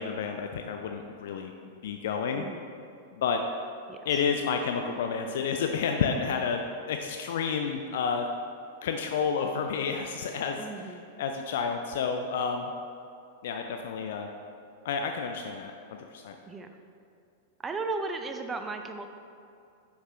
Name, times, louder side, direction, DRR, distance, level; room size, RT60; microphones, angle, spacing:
voice 1, 0.0-1.5 1.8-2.4 3.2-3.4 4.1-6.6 6.9-8.3 8.8-10.6 11.2-12.7 13.4-14.3 14.8-15.7 16.1-16.4, left 6 dB, 55° left, 4 dB, 0.4 m, -30 dB
voice 2, 10.6-11.0 16.5-16.8 17.6-19.1, right 3 dB, 15° right, 6 dB, 0.6 m, -35 dB
9.7 x 5.8 x 3.2 m, 2.5 s
figure-of-eight pair, 95°, 0 cm